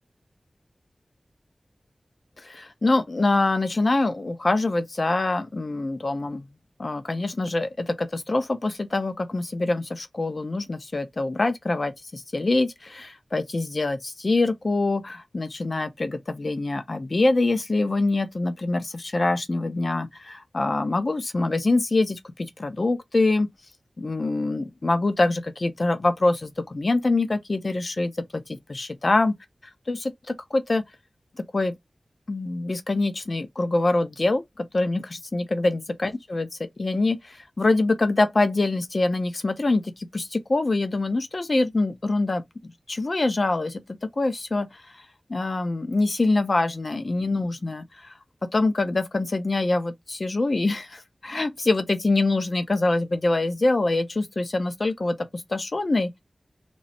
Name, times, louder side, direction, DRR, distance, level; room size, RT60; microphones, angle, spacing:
voice 1, 2.4-6.4 6.8-23.5 24.0-29.4 29.9-30.8 31.5-31.7 32.3-36.5 36.8-42.4 42.9-43.8 44.2-44.8 45.3-48.1 48.5-56.1, left 2 dB, 55° left, 0.7 m, -25 dB
3.1 x 2.0 x 4.0 m
wide cardioid pair, 65°, 0 cm